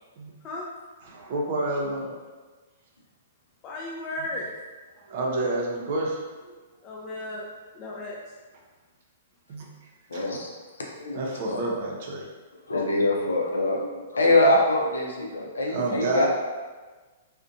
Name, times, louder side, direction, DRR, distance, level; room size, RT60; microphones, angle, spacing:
voice 1, 1.0-2.1 5.0-6.5 9.5-9.7 10.1-10.2 11.1-12.2 15.6-16.3, right 2 dB, 55° right, -1 dB, 0.5 m, -29 dB
voice 2, 3.6-4.5 6.8-7.5 7.7-8.2, left 1 dB, 30° left, -3 dB, 0.3 m, -34 dB
voice 3, 10.1-10.5 11.0-11.6 12.7-13.9 14.1-16.3, left 2 dB, 90° left, -1 dB, 0.5 m, -23 dB
2.5 x 2.1 x 2.5 m, 1.3 s
hypercardioid pair, 130°, 0 cm